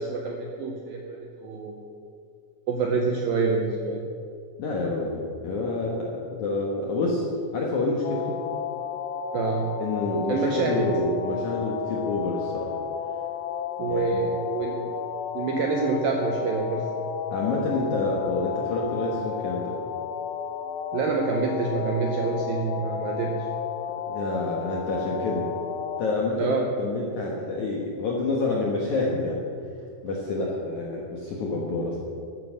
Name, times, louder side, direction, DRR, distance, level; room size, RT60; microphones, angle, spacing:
voice 1, 0.0-1.9 2.7-4.0 9.3-9.8 10.3-10.9 13.8-14.9 15.3-16.9 20.9-23.4 26.4-26.7, right 4 dB, 80° right, 1 dB, 2.1 m, -27 dB
voice 2, 4.6-6.1 6.4-7.2 7.5-8.4 9.8-12.7 13.9-14.2 17.3-19.8 24.1-25.5 26.0-29.5 30.0-32.0, left 2 dB, 70° left, -2 dB, 1.9 m, -28 dB
sound 1, 8.0-26.2, left 8 dB, 85° left, 2.5 m, -33 dB
13.5 x 9.6 x 6.4 m, 2.3 s
omnidirectional pair, 5.3 m